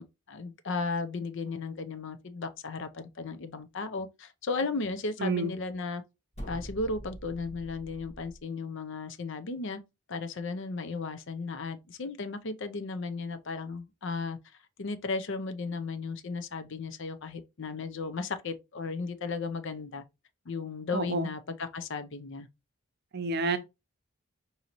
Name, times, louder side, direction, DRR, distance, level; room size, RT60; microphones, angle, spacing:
voice 1, 0.0-6.0 6.5-9.8 10.1-14.4 14.8-20.0 20.5-22.5, left 4 dB, 55° left, 0.5 m, -35 dB
voice 2, 5.2-5.5 20.9-21.3 23.1-23.6, right 3 dB, 50° right, 0.6 m, -29 dB
sound 1, 6.3-8.4, right 1 dB, 30° left, 1.1 m, -44 dB
5.0 x 2.7 x 2.9 m
head